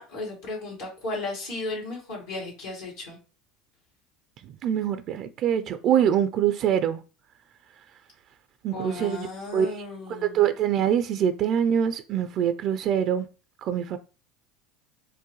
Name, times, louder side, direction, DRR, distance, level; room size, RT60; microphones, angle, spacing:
voice 1, 0.0-3.2 8.7-10.4, left 2 dB, 80° left, 1.9 m, -35 dB
voice 2, 4.6-7.0 8.6-9.3 9.5-13.3 13.6-14.0, right 9 dB, 55° right, 0.3 m, -24 dB
4.6 x 2.2 x 3.1 m
supercardioid pair, 90°, 0 cm